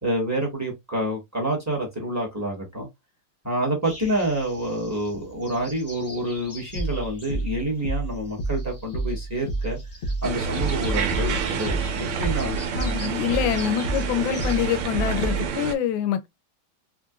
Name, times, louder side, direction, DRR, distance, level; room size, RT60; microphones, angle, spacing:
voice 1, 0.0-2.9 3.4-9.8 10.2-12.6, right 1 dB, 10° right, 0.9 m, -28 dB
sound 1, 3.8-14.9, left 1 dB, 15° left, 0.5 m, -44 dB
sound 2, 6.8-15.5, right 2 dB, 45° left, 0.8 m, -29 dB
sound 3, 10.2-15.8, right 6 dB, 85° right, 1.5 m, -29 dB
voice 2, 12.8-16.3, left 10 dB, 75° left, 1.3 m, -25 dB
3.8 x 2.5 x 2.3 m
omnidirectional pair, 2.3 m